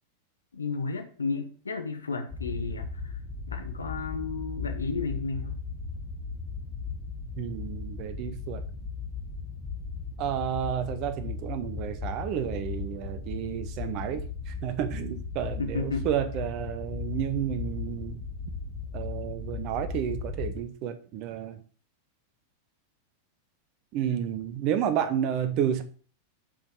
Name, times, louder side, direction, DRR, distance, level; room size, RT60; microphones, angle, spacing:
voice 1, 0.5-3.1 3.5-5.6 15.6-16.1, left 4 dB, 75° left, 7 dB, 1.0 m, -33 dB
sound 1, 2.3-20.7, left 4 dB, 15° left, 1.4 m, -37 dB
voice 2, 7.4-8.6 10.2-18.2 18.9-21.6 23.9-25.8, right 9 dB, 40° right, 10 dB, 0.8 m, -31 dB
6.9 x 5.3 x 3.6 m, 0.42 s
figure-of-eight pair, 90°, 0 cm